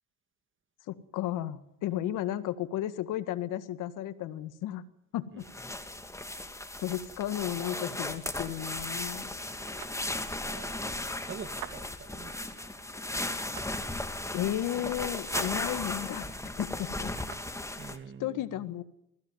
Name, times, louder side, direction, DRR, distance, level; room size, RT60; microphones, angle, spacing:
voice 1, 0.9-4.8 5.1-5.5 6.8-9.3 14.3-16.2 16.6-17.1 18.2-18.8, left 12 dB, 70° left, 12 dB, 1.9 m, -33 dB
sound 1, 5.4-18.0, left 2 dB, 10° left, 2.6 m, -36 dB
sound 2, 8.5-17.5, right 12 dB, 75° right, 2.3 m, -50 dB
voice 2, 10.4-10.8 11.2-12.5 17.8-18.7, right 6 dB, 40° right, 10 dB, 2.3 m, -45 dB
21.0 x 16.0 x 9.5 m, 0.79 s
supercardioid pair, 70°, 32 cm